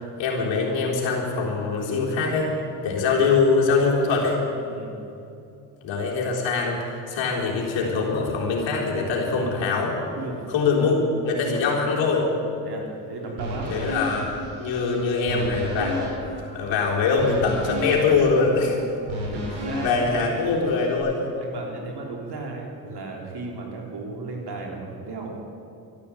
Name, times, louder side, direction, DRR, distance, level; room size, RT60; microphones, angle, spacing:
voice 1, 0.2-2.5 2.8-4.4 5.8-10.0 10.5-12.2 13.7-18.8 19.8-21.2, left 4 dB, 70° left, -3 dB, 3.9 m, -23 dB
voice 2, 2.8-3.2 4.6-4.9 10.2-10.5 11.4-11.6 12.6-13.7 19.3-20.1 21.4-25.4, right 3 dB, 55° right, 0 dB, 3.8 m, -35 dB
sound 1, 13.4-21.0, equal, 75° right, 4.8 m, -33 dB
12.5 x 12.0 x 8.6 m, 2.7 s
hypercardioid pair, 60°, 47 cm